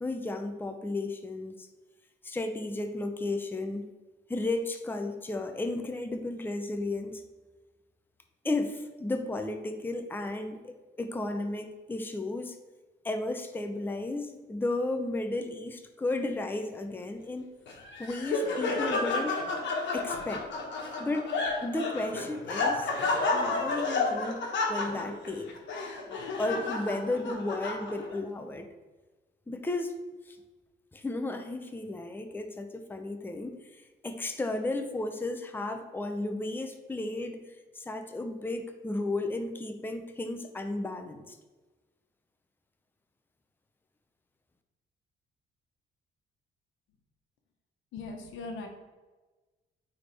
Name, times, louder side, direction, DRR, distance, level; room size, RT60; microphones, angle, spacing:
voice 1, 0.0-1.7 2.2-3.9 4.3-7.2 8.4-12.6 13.0-17.5 18.0-19.5 19.9-20.5 21.0-21.3 21.6-24.4 24.7-25.5 26.4-28.7 29.5-30.0 30.3-30.4 30.9-41.4, left 2 dB, 10° left, 6 dB, 0.6 m, -34 dB
Laughter, 17.7-28.2, left 3 dB, 65° left, 1.4 m, -31 dB
voice 2, 47.9-48.7, left 3 dB, 80° left, 3 dB, 1.1 m, -39 dB
8.8 x 3.6 x 3.4 m, 1.2 s
cardioid pair, 90°, 20 cm